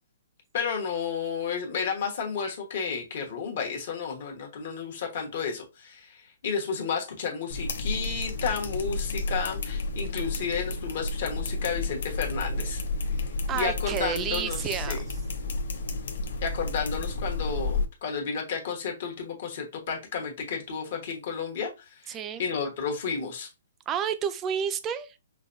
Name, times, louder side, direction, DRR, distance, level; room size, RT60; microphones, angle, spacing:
voice 1, 0.5-12.8 13.1-13.2 13.5-15.0 16.4-23.5, left 6 dB, 50° left, 1.3 m, -32 dB
sound 1, 7.5-17.8, left 2 dB, 70° left, 0.8 m, -31 dB
voice 2, 13.5-15.1 22.1-22.4 23.9-25.2, right 8 dB, 15° right, 0.3 m, -30 dB
5.5 x 2.2 x 2.6 m
hypercardioid pair, 160°, 0 cm